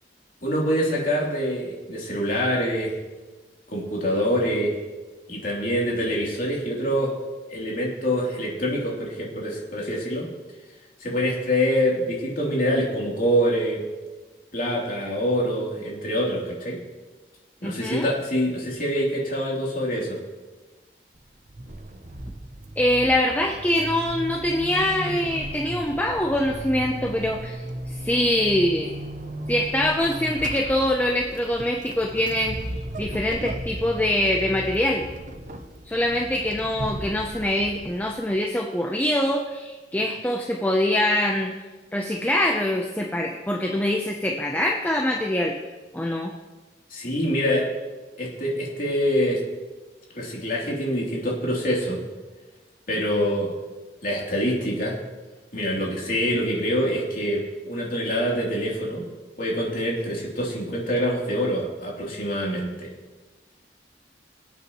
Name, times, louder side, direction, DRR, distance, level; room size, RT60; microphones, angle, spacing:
voice 1, 0.4-3.0 3.7-4.8 5.3-7.1 7.5-10.3 11.0-13.8 14.5-16.8 17.6-20.2 46.9-47.7 48.2-49.4 50.1-52.0 52.9-53.5 54.0-55.0 55.5-59.1 59.4-62.9, equal, 50° left, -4 dB, 3.3 m, -25 dB
voice 2, 17.6-18.1 22.8-28.9 29.5-35.0 35.9-41.5 41.9-45.5 45.9-46.3, left 1 dB, 10° left, 1 dB, 0.7 m, -24 dB
Vehicle / Accelerating revving vroom / Squeak, 21.2-38.4, right 1 dB, 45° right, 0.8 m, -36 dB
25.0 x 8.3 x 3.1 m, 1.3 s
head